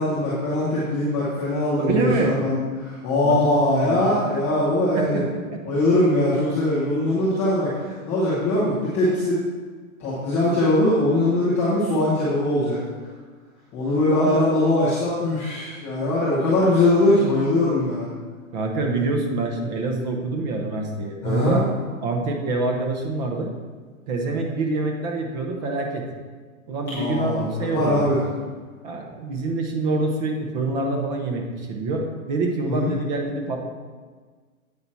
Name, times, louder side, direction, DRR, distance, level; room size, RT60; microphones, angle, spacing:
voice 1, 0.0-5.2 5.6-7.7 8.1-9.4 10.0-12.8 13.7-18.1 21.2-21.6 26.9-28.2 32.6-32.9, left 1 dB, 5° left, -11 dB, 0.4 m, -21 dB
voice 2, 1.8-2.4 3.2-4.0 4.9-5.2 5.5-5.6 14.1-14.3 18.5-21.6 22.0-23.5 24.1-26.0 26.7-28.0 28.8-33.7, right 3 dB, 30° right, 1 dB, 0.9 m, -26 dB
8.6 x 5.9 x 4.1 m, 1.5 s
hypercardioid pair, 150°, 42 cm